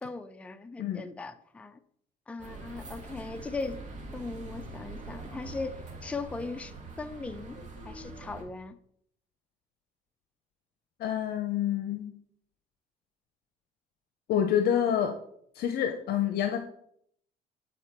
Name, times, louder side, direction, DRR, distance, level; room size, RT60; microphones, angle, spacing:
voice 1, 0.0-1.8 2.3-3.8 4.1-7.6 7.8-8.8, left 3 dB, 10° left, 10 dB, 0.4 m, -38 dB
sound 1, 2.4-8.4, right 2 dB, 45° right, 1.9 m, -43 dB
voice 2, 11.0-12.1 14.3-15.1 15.5-16.6, left 9 dB, 70° left, 7 dB, 0.7 m, -27 dB
8.4 x 4.2 x 4.4 m, 0.68 s
cardioid pair, 110°, 17 cm